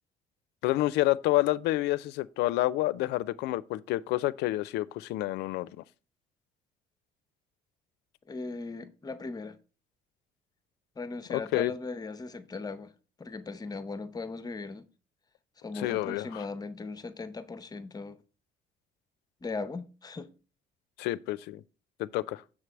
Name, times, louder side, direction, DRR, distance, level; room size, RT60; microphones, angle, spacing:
voice 1, 0.6-5.8 11.3-11.7 15.8-16.4 21.0-21.6 22.0-22.4, left 17 dB, 85° left, 0.4 m, -29 dB
voice 2, 8.3-9.6 11.0-12.9 13.2-14.9 15.6-18.2 19.4-20.3, left 3 dB, 25° left, 0.6 m, -38 dB
7.2 x 3.3 x 6.0 m
cardioid pair, 110°, 17 cm